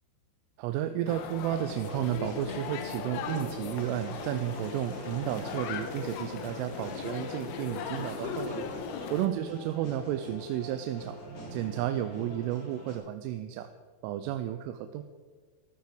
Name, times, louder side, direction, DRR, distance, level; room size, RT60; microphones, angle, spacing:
voice 1, 0.6-8.7 9.1-11.2 11.5-13.7 14.0-15.0, right 11 dB, 90° right, 8 dB, 3.2 m, -32 dB
sound 1, 1.1-9.3, left 8 dB, 80° left, 3.1 m, -38 dB
sound 2, 1.8-12.9, right 1 dB, 45° left, 4.4 m, -45 dB
Toilet flush, 3.2-9.3, right 2 dB, 70° right, 0.9 m, -49 dB
14.0 x 13.5 x 5.2 m, 1.5 s
omnidirectional pair, 5.6 m